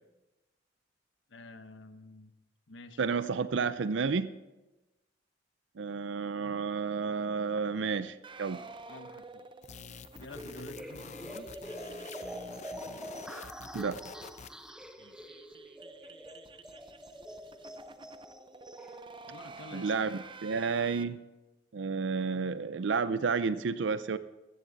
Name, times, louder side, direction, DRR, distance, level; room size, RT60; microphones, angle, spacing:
voice 1, 1.3-2.3 2.7-3.0 8.9-9.4 10.2-11.5 15.0-15.3 19.3-19.9, left 2 dB, 85° left, 9 dB, 1.1 m, -49 dB
voice 2, 3.0-4.3 5.8-8.6 13.7-14.0 19.7-21.2 21.7-24.2, right 5 dB, 80° right, 14 dB, 0.5 m, -31 dB
sound 1, 8.2-13.3 13.6-13.7 14.0-14.1 14.3-21.0, right 4 dB, 25° right, 0.6 m, -51 dB
sound 2, 9.6-14.7, left 5 dB, 40° left, 0.6 m, -48 dB
sound 3, 10.3-19.0, equal, 5° right, 0.9 m, -45 dB
16.0 x 13.5 x 4.1 m, 1.1 s
head